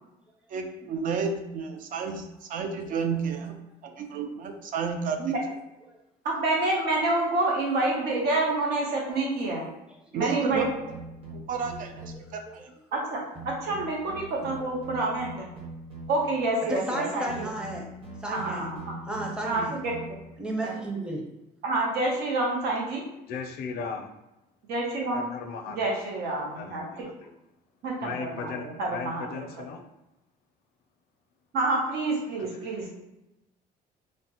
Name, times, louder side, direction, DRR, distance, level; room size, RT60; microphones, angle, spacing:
voice 1, 0.5-3.5 3.8-5.3 10.1-10.9 11.3-12.0 12.3-12.7, right 5 dB, 55° right, 5 dB, 0.4 m, -31 dB
voice 2, 6.2-9.7 10.1-10.6 12.9-13.2 13.4-15.5 16.1-17.5 18.3-18.9 19.4-19.9 21.6-23.0 24.7-25.2 25.8-26.9 27.8-29.4 31.5-32.9, right 2 dB, 75° right, -2 dB, 0.8 m, -28 dB
sound 1, 10.5-12.4 13.4-16.5 17.3-20.4, right 2 dB, 35° right, 1.0 m, -42 dB
voice 3, 11.5-11.8 12.1-12.6 12.9-13.0 16.7-17.9 18.2-18.7 19.1-19.7 20.4-21.2, right 1 dB, 5° right, -1 dB, 0.6 m, -34 dB
voice 4, 23.3-24.1 25.1-26.0 26.5-27.3 28.0-29.8 32.5-32.6, left 5 dB, 65° left, 5 dB, 0.5 m, -37 dB
3.2 x 2.0 x 2.8 m, 0.92 s
cardioid pair, 110°, 17 cm